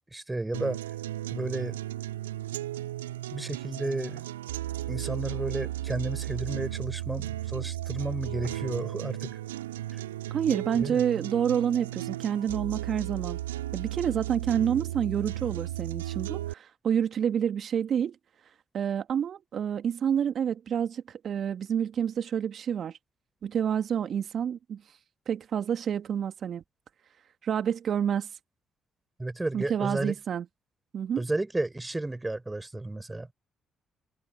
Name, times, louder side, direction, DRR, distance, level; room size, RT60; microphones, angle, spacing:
voice 1, 0.1-0.8 1.3-1.8 3.3-4.3 4.9-9.4 9.9-10.0 10.7-11.0 29.2-30.1 31.2-33.3, right 2 dB, 15° right, 4.4 m, -32 dB
sound 1, 0.5-16.5, right 14 dB, 85° right, 5.6 m, -35 dB
voice 2, 10.3-13.4 13.7-18.2 18.7-23.0 23.4-24.8 25.3-26.6 27.4-28.3 29.5-30.5 30.9-31.2, right 8 dB, 55° right, 2.0 m, -28 dB
hypercardioid pair, 45°, 0 cm